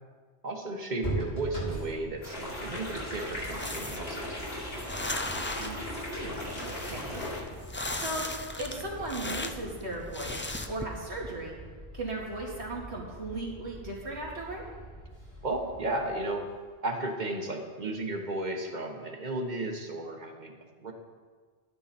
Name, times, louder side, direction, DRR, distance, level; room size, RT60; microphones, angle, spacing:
voice 1, 0.4-4.4 15.4-16.4 16.8-20.9, right 2 dB, 45° right, 2 dB, 1.4 m, -34 dB
sound 1, 1.0-16.7, right 2 dB, 85° left, 3.0 m, -43 dB
sound 2, 2.2-7.4, left 1 dB, 60° left, 2.8 m, -38 dB
sound 3, 3.1-10.8, left 2 dB, 20° left, 0.3 m, -38 dB
voice 2, 5.6-7.2 7.9-8.3 8.6-11.5 11.9-14.6, right 2 dB, 90° right, -3 dB, 2.6 m, -37 dB
12.0 x 9.6 x 4.3 m, 1.5 s
omnidirectional pair, 1.1 m